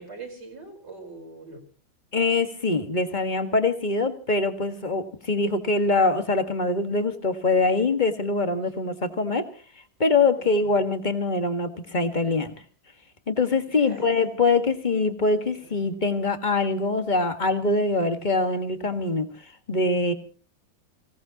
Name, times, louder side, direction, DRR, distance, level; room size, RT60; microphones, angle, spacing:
voice 1, 0.0-1.6 10.3-10.5 13.7-14.2 15.6-15.7, right 3 dB, 60° right, 1 dB, 5.2 m, -42 dB
voice 2, 2.1-9.5 10.0-12.5 13.3-19.3 19.7-20.1, left 3 dB, 25° left, 8 dB, 1.6 m, -23 dB
28.0 x 17.5 x 2.9 m, 0.38 s
omnidirectional pair, 2.1 m